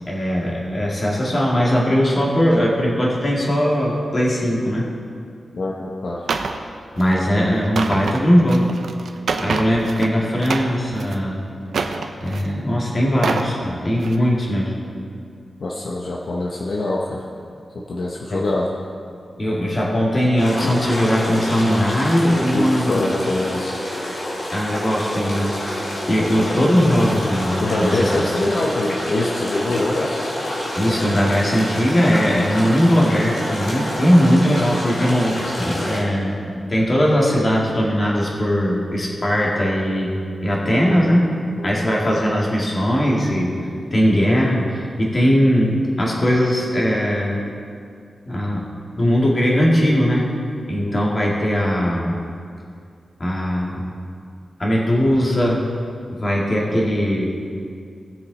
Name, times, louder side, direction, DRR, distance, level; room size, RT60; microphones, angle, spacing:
voice 1, 0.0-4.9 7.0-8.7 9.4-11.4 12.2-14.7 18.3-18.4 19.4-23.0 24.5-28.1 29.7-29.8 30.8-40.2 40.4-41.3 41.6-43.6 43.9-47.4 48.3-48.7 49.0-50.3 50.7-52.2 53.2-53.9 54.6-55.6 56.2-57.3, equal, 35° left, -3 dB, 2.2 m, -19 dB
voice 2, 5.5-6.3 15.6-17.2 17.7-18.7 20.6-20.8 22.3-23.8 27.6-30.2 41.6-41.7 50.8-51.0, left 2 dB, 65° left, -2 dB, 0.9 m, -24 dB
sound 1, 6.3-6.6 7.0-7.2 7.6-10.1 10.4-11.2 11.7-12.5 13.0-13.5 14.0-14.2, right 4 dB, 90° right, 0.6 m, -26 dB
sound 2, 20.4-36.0, left 1 dB, 90° left, 2.8 m, -27 dB
17.0 x 6.7 x 4.1 m, 2.3 s
wide cardioid pair, 110°, 0 cm